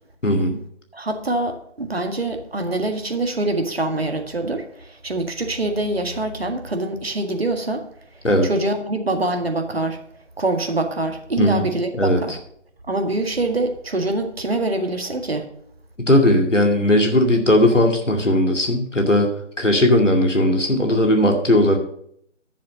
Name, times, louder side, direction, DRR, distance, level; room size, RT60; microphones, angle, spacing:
voice 1, 0.2-0.6 8.2-8.5 11.4-11.7 11.9-12.2 16.0-19.3 19.6-21.8, left 1 dB, 90° left, 3 dB, 2.3 m, -17 dB
voice 2, 0.9-7.8 8.4-10.0 10.4-12.4 12.9-15.4, right 2 dB, 55° right, 6 dB, 1.8 m, -24 dB
10.5 x 7.6 x 5.2 m, 0.69 s
figure-of-eight pair, 160°, 36 cm